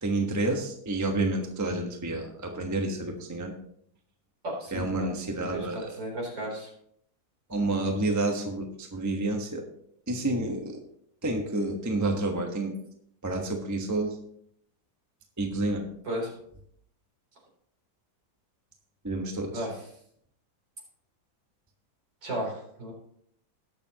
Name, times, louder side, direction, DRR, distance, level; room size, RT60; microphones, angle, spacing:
voice 1, 0.0-3.5 4.7-6.0 7.5-9.6 10.1-10.8 11.2-12.7 13.2-14.2 15.4-15.9 19.0-19.7, right 2 dB, 10° right, 2 dB, 1.0 m, -29 dB
voice 2, 4.4-5.1 5.5-6.7 7.7-7.9 16.0-16.3 19.5-19.8 22.2-22.9, right 1 dB, 65° right, -2 dB, 4.4 m, -34 dB
18.5 x 6.9 x 3.0 m, 0.69 s
omnidirectional pair, 2.2 m